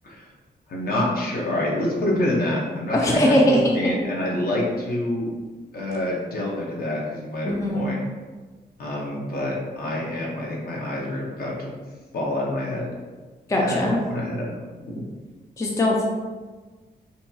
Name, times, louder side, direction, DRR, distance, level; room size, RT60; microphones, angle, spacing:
voice 1, 0.7-5.3 5.7-8.0 8.8-11.7 12.1-12.9 13.5-14.5 14.8-15.0, left 1 dB, 60° left, -4 dB, 0.8 m, -27 dB
voice 2, 2.9-3.4 7.5-7.9 13.5-14.0 15.6-16.0, left 1 dB, 20° left, -1 dB, 0.3 m, -21 dB
2.7 x 2.3 x 2.6 m, 1.3 s
cardioid pair, 90°, 18 cm